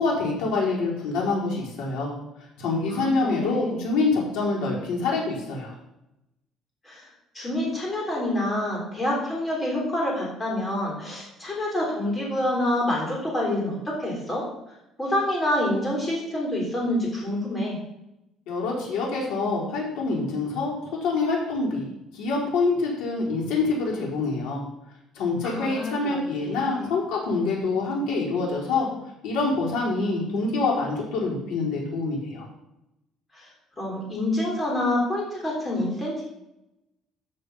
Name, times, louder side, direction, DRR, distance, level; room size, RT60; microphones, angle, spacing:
voice 1, 0.0-2.1 2.6-5.7 18.5-20.7 21.0-24.6 25.1-28.9 29.2-32.5, left 3 dB, 80° left, -4 dB, 4.1 m, -26 dB
voice 2, 2.9-3.8 6.8-7.1 7.3-14.5 15.0-17.8 25.4-26.9 33.3-33.5 33.8-36.2, left 1 dB, 10° left, -4 dB, 3.5 m, -27 dB
13.5 x 4.7 x 5.4 m, 0.89 s
cardioid pair, 170°, 0 cm